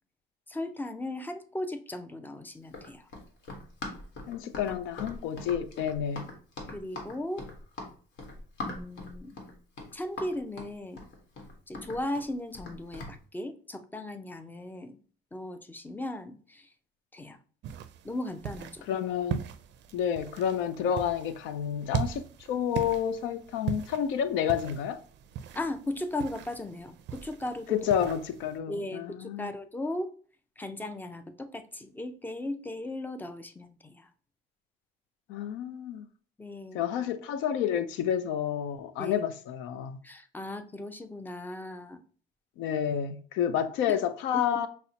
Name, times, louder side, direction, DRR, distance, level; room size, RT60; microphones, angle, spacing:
voice 1, 0.5-3.1 6.7-7.4 8.6-9.4 9.9-11.1 11.7-15.0 15.3-16.7 17.1-17.4 18.0-18.9 25.5-27.8 28.7-30.1 30.6-34.1 36.4-36.8 39.0-39.2 40.0-42.0 43.9-44.0, left 1 dB, 10° left, 0.4 m, -37 dB
Run, 2.6-13.2, left 2 dB, 70° left, 1.1 m, -41 dB
voice 2, 4.3-6.3 18.9-19.4 19.9-25.0 27.7-29.5 35.3-36.1 36.7-40.0 42.6-44.7, left 9 dB, 85° left, 0.4 m, -30 dB
sound 1, 17.6-28.6, right 8 dB, 65° right, 0.4 m, -39 dB
5.5 x 2.0 x 2.7 m
cardioid pair, 100°, 20 cm